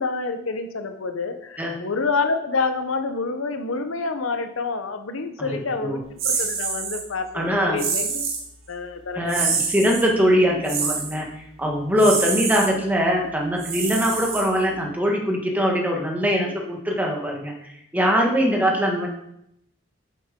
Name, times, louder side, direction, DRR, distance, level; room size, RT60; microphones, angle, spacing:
voice 1, 0.0-8.2 8.7-9.5 18.6-18.7, left 4 dB, 85° left, 7 dB, 0.8 m, -28 dB
voice 2, 5.4-6.0 7.3-7.8 9.2-19.1, equal, 10° right, 0 dB, 1.3 m, -22 dB
sound 1, 6.2-7.0 7.8-8.5 9.3-10.1 10.7-11.2 12.0-12.7 13.6-14.8, right 5 dB, 80° right, 1.8 m, -26 dB
8.7 x 7.2 x 3.7 m, 0.78 s
head